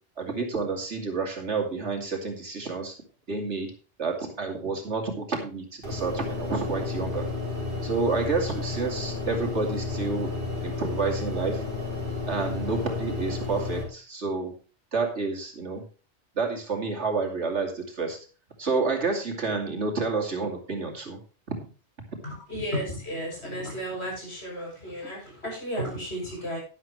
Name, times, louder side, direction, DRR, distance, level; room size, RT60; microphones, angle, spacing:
voice 1, 0.2-2.9 3.3-3.7 4.0-7.3 7.8-10.3 10.6-11.6 12.3-14.5 14.9-15.8 16.3-18.2 18.6-21.2, right 4 dB, 90° right, 2 dB, 2.9 m, -29 dB
sound 1, 5.8-13.8, left 3 dB, 50° right, 4.7 m, -32 dB
voice 2, 22.2-26.6, equal, 70° left, -3 dB, 7.1 m, -33 dB
12.0 x 11.0 x 3.2 m, 0.35 s
omnidirectional pair, 1.2 m